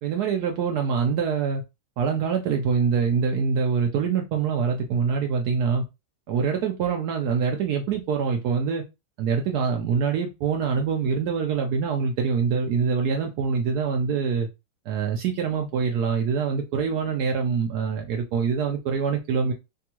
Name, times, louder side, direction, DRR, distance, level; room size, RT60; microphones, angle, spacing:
voice 1, 0.0-1.6 2.0-5.8 6.3-8.8 9.2-14.5 14.9-19.5, right 6 dB, 75° right, 1.1 m, -24 dB
3.5 x 2.3 x 2.8 m
omnidirectional pair, 1.8 m